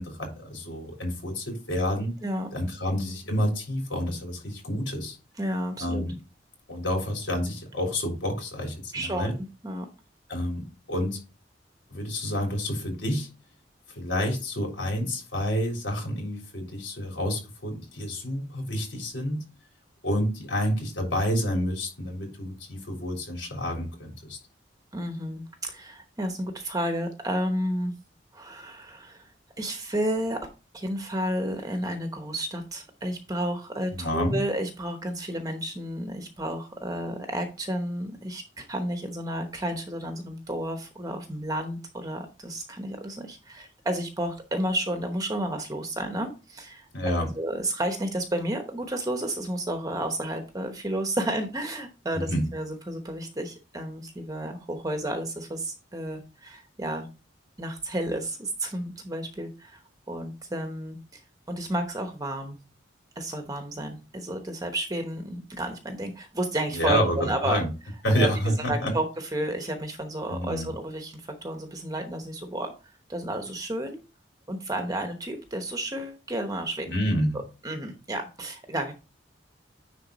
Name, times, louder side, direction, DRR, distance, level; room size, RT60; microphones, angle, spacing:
voice 1, 0.0-2.1 2.5-5.2 5.8-6.1 6.7-9.3 10.3-11.2 11.9-13.3 14.0-19.4 20.0-24.4 33.9-34.4 46.9-47.3 52.1-52.4 66.7-67.2 67.4-67.7 68.0-68.9 70.3-70.7 76.9-77.4, equal, 80° left, 1 dB, 3.6 m, -28 dB
voice 2, 5.4-6.0 8.9-9.9 24.9-27.9 28.3-29.3 29.6-30.5 30.7-46.9 47.4-57.1 57.6-59.8 60.1-61.2 61.5-62.6 63.2-67.6 68.2-68.3 68.7-72.7 73.1-74.0 74.5-76.9 77.6-78.9, right 1 dB, 20° right, 5 dB, 0.9 m, -31 dB
10.0 x 3.9 x 4.0 m, 0.31 s
head